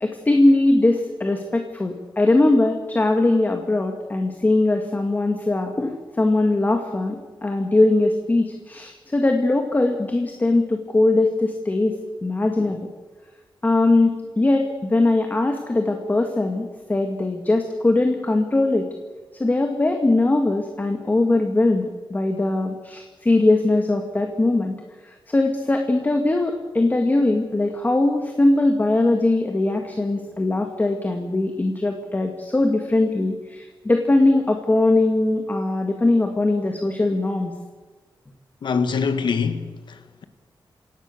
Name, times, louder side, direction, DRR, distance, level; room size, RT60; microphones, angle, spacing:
voice 1, 0.0-12.0 12.2-12.9 13.6-18.9 19.3-24.7 25.0-37.5, left 2 dB, 20° left, 1.9 m, -20 dB
voice 2, 38.6-40.2, left 5 dB, 65° left, 1.8 m, -24 dB
28.5 x 17.0 x 6.7 m
wide cardioid pair, 140°, 8 cm